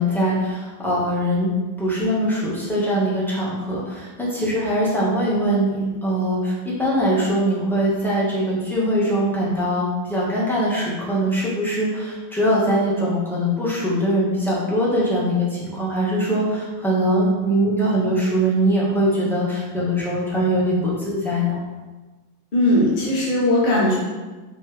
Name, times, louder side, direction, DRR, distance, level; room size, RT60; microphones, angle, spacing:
voice 1, 0.0-1.5 1.8-21.6, equal, ahead, -8 dB, 1.5 m, -22 dB
voice 2, 22.5-24.0, left 1 dB, 30° left, -6 dB, 1.2 m, -18 dB
6.9 x 4.5 x 3.5 m, 1.2 s
omnidirectional pair, 2.0 m